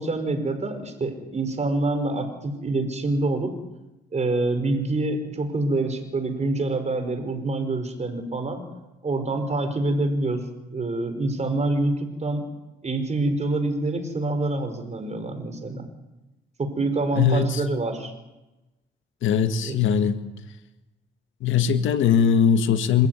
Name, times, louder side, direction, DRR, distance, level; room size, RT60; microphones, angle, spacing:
voice 1, 0.0-3.5 4.1-8.7 9.0-10.4 10.7-12.5 12.8-15.9 16.6-18.1 19.6-19.8, right 2 dB, 35° right, 5.0 m, -26 dB
voice 2, 17.2-17.6 19.2-20.2 21.4-23.1, left 7 dB, 80° left, 1.8 m, -20 dB
26.5 x 14.5 x 9.6 m
cardioid pair, 90°, 20 cm